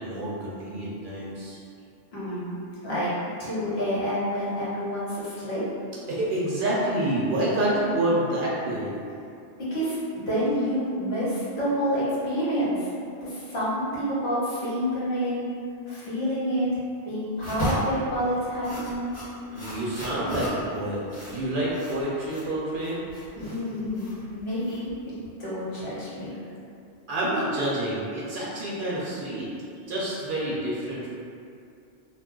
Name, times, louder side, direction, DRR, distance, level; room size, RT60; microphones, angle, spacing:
voice 1, 0.0-1.6 6.1-9.0 19.5-23.0 26.3-26.5 27.1-29.5 29.8-31.1, right 1 dB, 60° right, -6 dB, 0.6 m, -28 dB
voice 2, 2.1-2.6 2.8-3.1 3.4-5.6 9.7-12.9 13.2-15.4 15.9-16.7 17.0-19.1 23.4-24.9 25.4-26.4, equal, 70° left, -9 dB, 1.2 m, -28 dB
sound 1, 17.4-25.3, equal, 45° left, 1.2 m, -36 dB
2.3 x 2.3 x 3.7 m, 2.5 s
omnidirectional pair, 1.1 m